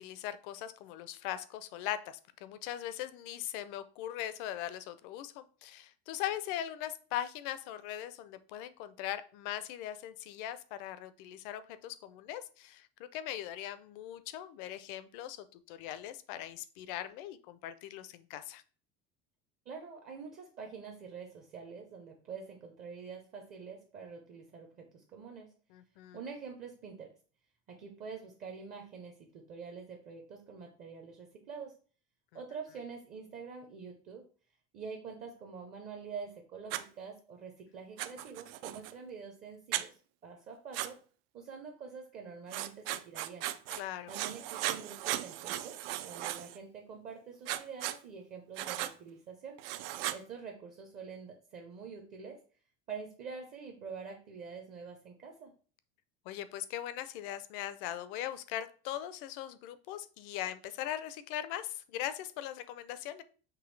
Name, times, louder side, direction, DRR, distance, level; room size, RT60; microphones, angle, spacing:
voice 1, 0.0-18.6 25.7-26.2 43.8-44.1 56.3-63.2, left 12 dB, 60° left, 14 dB, 0.5 m, -40 dB
voice 2, 19.7-25.5 26.1-27.2 27.7-31.8 32.3-34.2 34.7-41.0 41.3-43.5 44.1-45.8 46.0-49.6 50.1-52.4 52.9-55.5, right 5 dB, 30° right, 2 dB, 0.5 m, -46 dB
Writing, 36.7-36.8 38.0-38.9 39.7-39.9 40.7-40.9 42.5-43.8 44.1-46.6 47.5-48.0 48.6-48.9 49.6-50.2, right 14 dB, 80° right, 0.5 m, -37 dB
6.0 x 2.7 x 3.1 m, 0.40 s
cardioid pair, 170°, 29 cm